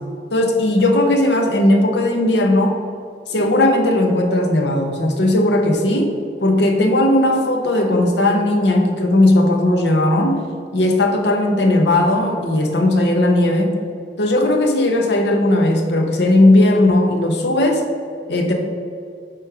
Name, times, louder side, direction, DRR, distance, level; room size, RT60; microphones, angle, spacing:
voice 1, 0.3-2.8 3.3-6.1 6.4-10.4 10.7-13.8 14.2-17.8 18.3-18.5, left 1 dB, 70° left, 3 dB, 0.9 m, -16 dB
8.4 x 3.1 x 4.7 m, 2.3 s
head